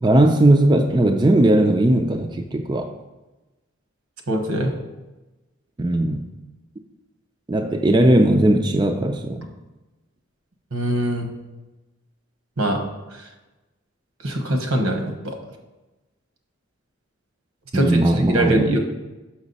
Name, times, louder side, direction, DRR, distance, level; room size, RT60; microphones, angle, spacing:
voice 1, 0.0-2.9 5.8-6.3 7.5-9.4 17.7-18.8, right 1 dB, 20° right, 4 dB, 0.4 m, -18 dB
voice 2, 4.3-4.7 10.7-11.3 12.6-12.8 14.2-15.4 17.7-18.8, right 1 dB, 85° right, 4 dB, 1.1 m, -22 dB
6.1 x 5.9 x 4.1 m, 1.1 s
head